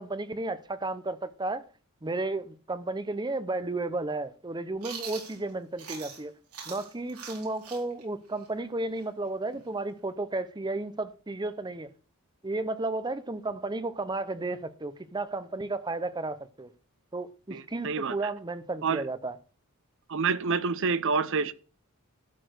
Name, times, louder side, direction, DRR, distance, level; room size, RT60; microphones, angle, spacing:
voice 1, 0.0-1.6 2.0-6.3 6.7-11.9 12.4-16.7 17.1-19.4, right 2 dB, 20° right, 0.7 m, -33 dB
Chewing mastication, 4.8-6.2 6.5-10.1, right 6 dB, 85° right, 4.3 m, -43 dB
voice 2, 17.5-18.2 18.8-19.0 20.1-21.5, right 5 dB, 60° right, 0.7 m, -27 dB
12.5 x 4.2 x 8.0 m
head